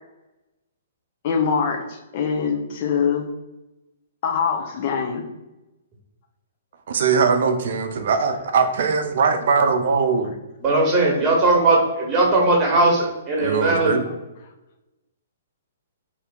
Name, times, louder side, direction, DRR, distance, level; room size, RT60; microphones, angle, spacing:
voice 1, 1.2-3.3 4.2-5.2 13.5-13.6, left 6 dB, 50° left, 2 dB, 0.6 m, -23 dB
voice 2, 6.9-10.4 13.4-14.0, right 5 dB, 60° right, 7 dB, 0.5 m, -21 dB
voice 3, 10.6-14.0, right 2 dB, 20° right, -2 dB, 1.3 m, -18 dB
2.8 x 2.8 x 3.5 m, 1.0 s
hypercardioid pair, 125°, 0 cm